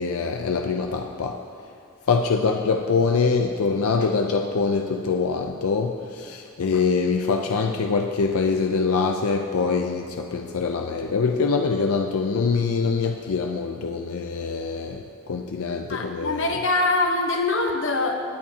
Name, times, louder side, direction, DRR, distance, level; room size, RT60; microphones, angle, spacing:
voice 1, 0.0-1.4 2.1-16.5, left 4 dB, 85° left, 4 dB, 0.5 m, -24 dB
voice 2, 15.9-18.2, left 2 dB, 60° left, 3 dB, 1.1 m, -23 dB
19.0 x 9.0 x 2.8 m, 2.4 s
head